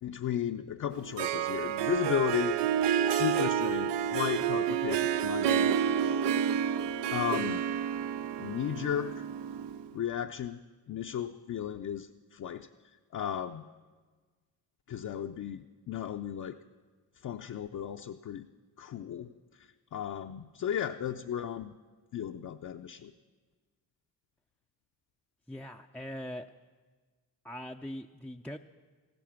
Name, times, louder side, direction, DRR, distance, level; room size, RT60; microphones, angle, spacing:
voice 1, 0.0-2.6 3.1-6.4 7.1-7.6 8.4-9.2 9.9-10.6 10.9-12.7 13.1-13.6 14.9-16.6 17.2-18.5 18.8-19.3 19.9-21.7 22.1-23.1, left 9 dB, 45° left, 5 dB, 0.6 m, -34 dB
Harp, 0.9-9.9, right 9 dB, 80° right, 0.6 m, -29 dB
voice 2, 25.5-26.5 27.4-28.6, equal, 5° left, 2 dB, 0.4 m, -41 dB
14.5 x 12.5 x 5.9 m, 1.4 s
cardioid pair, 65°, 42 cm